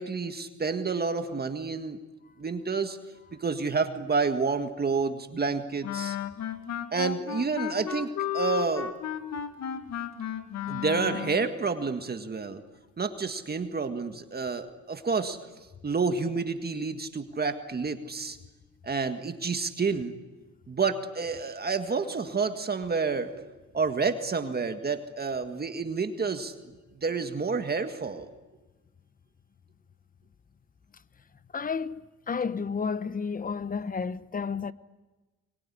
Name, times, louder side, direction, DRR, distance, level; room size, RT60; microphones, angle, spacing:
voice 1, 0.0-2.0 2.4-3.0 3.3-6.2 6.9-8.1 8.3-8.9 10.7-12.6 13.0-15.4 15.8-18.4 18.8-20.2 20.7-23.5 23.7-26.5 27.0-28.3, right 4 dB, 30° right, 1.8 m, -29 dB
Wind instrument woodwind instrument, 5.8-11.5, left 10 dB, 65° left, 2.1 m, -33 dB
voice 2, 31.5-32.0 32.3-34.7, left 5 dB, 30° left, 1.0 m, -31 dB
24.5 x 22.0 x 9.9 m
cardioid pair, 90°, 30 cm